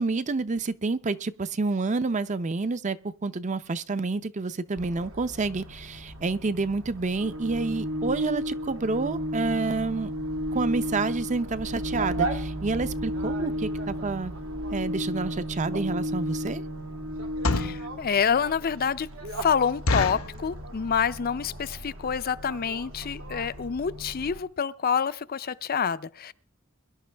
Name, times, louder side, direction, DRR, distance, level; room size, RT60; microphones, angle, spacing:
voice 1, 0.0-3.0 3.2-10.1 10.5-14.3 14.7-16.6, right 3 dB, 35° right, 0.6 m, -29 dB
sound 1, 4.7-24.4, right 2 dB, 90° right, 2.3 m, -40 dB
Organ, 7.2-18.1, equal, 70° right, 1.1 m, -33 dB
sound 2, 15.6-15.8 16.3-16.5 17.2-17.8 18.4-18.5 18.8-18.9 19.3-19.4 19.9-20.4 21.0-21.2 21.5-21.6 21.8-22.1 22.6-22.7 23.0-23.1 23.5-23.6 23.8-23.9, left 2 dB, 85° left, 1.2 m, -27 dB
voice 2, 17.5-19.1 19.4-26.3, left 7 dB, 45° left, 0.5 m, -27 dB
22.5 x 11.0 x 3.4 m
head